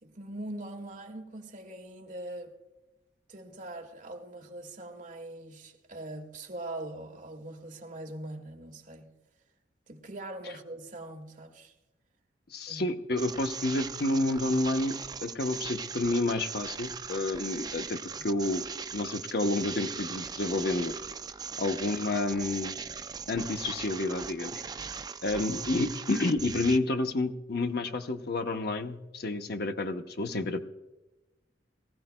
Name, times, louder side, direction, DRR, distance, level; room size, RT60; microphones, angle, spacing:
voice 1, 0.0-2.5 3.3-9.1 9.9-11.7 12.7-12.9 18.2-18.3, right 1 dB, 45° right, 1.9 m, -42 dB
voice 2, 12.5-15.0 15.2-18.0 18.2-18.6 18.9-20.9 21.6-22.7 23.3-24.6 25.2-30.6, left 2 dB, 60° left, 0.8 m, -29 dB
sound 1, 13.2-26.8, right 6 dB, 25° right, 0.4 m, -39 dB
23.0 x 15.0 x 2.2 m
head